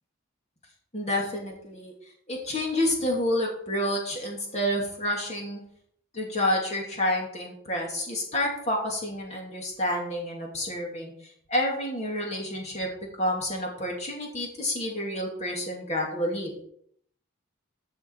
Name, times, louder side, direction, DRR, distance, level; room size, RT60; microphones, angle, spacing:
voice 1, 0.9-1.9 2.3-5.6 6.1-11.1 11.5-12.9 13.2-16.7, left 1 dB, 30° left, -1 dB, 2.7 m, -29 dB
13.5 x 5.7 x 4.8 m, 0.67 s
head